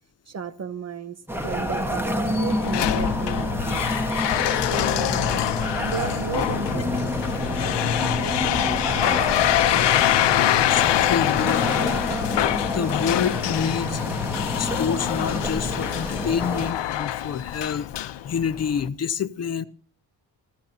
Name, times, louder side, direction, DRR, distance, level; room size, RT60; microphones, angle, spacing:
voice 1, 0.3-3.9 4.5-5.4 5.8-7.8 8.2-9.9 16.0-16.2 16.5-16.7 17.3-17.4, right 6 dB, 40° right, 1.2 m, -35 dB
sound 1, 1.3-16.7, equal, 5° right, 1.4 m, -29 dB
sound 2, 1.4-18.9, left 12 dB, 80° left, 0.9 m, -25 dB
voice 2, 10.6-12.4 12.7-14.0 14.6-19.6, left 7 dB, 40° left, 0.7 m, -28 dB
28.5 x 14.5 x 2.9 m
cardioid pair, 150°, 42 cm